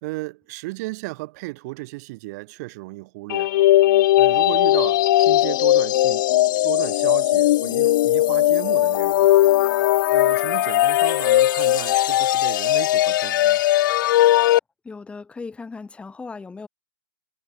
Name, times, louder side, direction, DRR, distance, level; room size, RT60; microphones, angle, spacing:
voice 1, 0.0-3.5 4.2-6.3 6.6-9.3 10.1-13.6, right 23 dB, 40° right, 2.4 m, -34 dB
sound 1, 3.3-14.6, left 14 dB, 55° left, 1.4 m, -18 dB
voice 2, 14.8-16.7, left 4 dB, 10° left, 5.0 m, -37 dB
hypercardioid pair, 140°, 13 cm